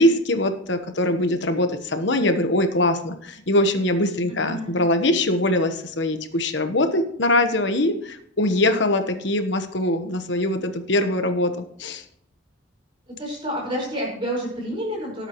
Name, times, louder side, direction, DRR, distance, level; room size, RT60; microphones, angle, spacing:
voice 1, 0.0-12.0, left 1 dB, 65° left, 7 dB, 1.2 m, -22 dB
voice 2, 4.3-4.8 8.5-8.6 13.2-15.3, equal, 25° right, -3 dB, 5.2 m, -29 dB
18.5 x 8.2 x 3.1 m, 0.66 s
head